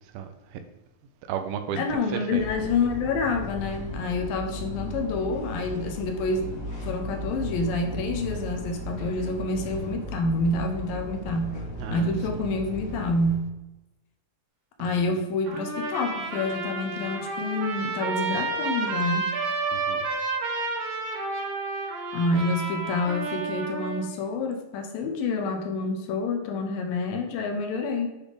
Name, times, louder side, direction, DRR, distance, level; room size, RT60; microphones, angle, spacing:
voice 1, 0.1-0.6 1.3-1.8 2.1-2.8 11.8-12.1 14.8-15.2 19.7-20.1, right 7 dB, 80° right, 8 dB, 2.3 m, -34 dB
voice 2, 1.8-6.6 6.8-11.6 11.9-13.5 14.8-19.3 22.1-28.1, left 3 dB, 75° left, 5 dB, 2.3 m, -28 dB
sound 1, 2.3-13.4, equal, 35° left, 1.4 m, -36 dB
Trumpet, 15.5-24.1, right 3 dB, 60° right, 2.6 m, -30 dB
8.2 x 3.4 x 5.0 m, 1.0 s
omnidirectional pair, 4.4 m